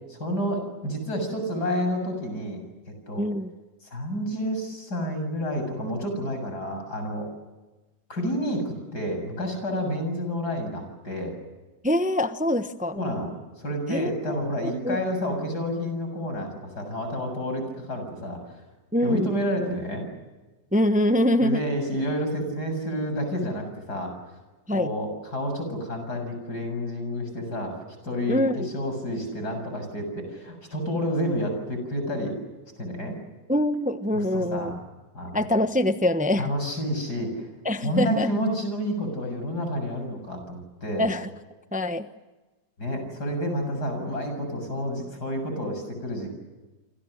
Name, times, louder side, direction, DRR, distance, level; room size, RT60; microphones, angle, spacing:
voice 1, 0.1-2.7 3.1-3.2 3.8-7.3 8.1-11.4 12.9-18.6 19.0-20.1 21.4-24.1 24.7-27.7 28.0-32.4 32.8-33.2 34.1-34.8 35.1-35.4 36.4-37.5 37.8-41.1 42.8-46.3, equal, 90° left, 6 dB, 7.8 m, -29 dB
voice 2, 3.2-3.5 11.8-12.9 13.9-14.1 14.6-15.0 18.9-19.3 20.7-21.6 24.7-24.9 28.3-28.7 33.5-34.8 35.3-36.5 37.6-38.3 41.0-41.3 41.7-42.1, left 1 dB, 5° right, 9 dB, 0.8 m, -24 dB
28.5 x 27.0 x 6.6 m, 1.2 s
omnidirectional pair, 1.7 m